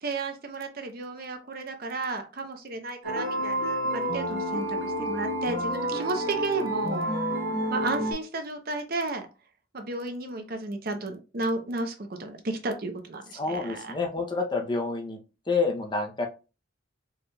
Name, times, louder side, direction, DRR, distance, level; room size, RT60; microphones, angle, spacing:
voice 1, 0.0-7.1 7.7-9.3 9.7-13.9, right 3 dB, 50° right, 6 dB, 0.6 m, -33 dB
sound 1, 3.0-8.1, equal, 70° right, 1.5 m, -29 dB
voice 2, 13.3-15.2 15.5-16.3, left 3 dB, 20° left, 3 dB, 0.5 m, -28 dB
4.2 x 3.3 x 2.2 m, 0.32 s
head